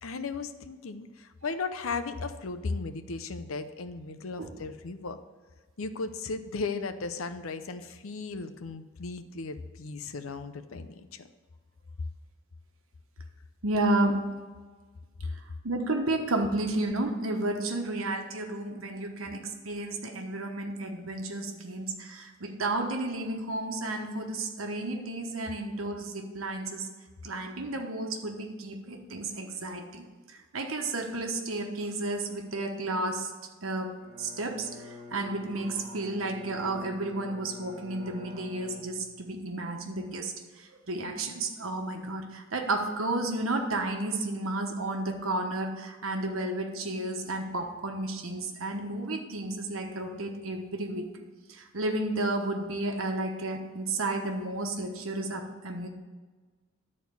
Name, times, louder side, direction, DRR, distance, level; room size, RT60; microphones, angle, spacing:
voice 1, 0.0-5.2 5.8-11.3, left 4 dB, 85° left, 10 dB, 0.7 m, -36 dB
voice 2, 13.6-14.2 15.2-26.9 27.2-33.3 33.6-51.1 51.5-55.9, right 2 dB, 85° right, 3 dB, 1.2 m, -32 dB
Bowed string instrument, 34.0-39.4, left 1 dB, 40° right, 2.4 m, -47 dB
11.0 x 4.3 x 6.9 m, 1.4 s
head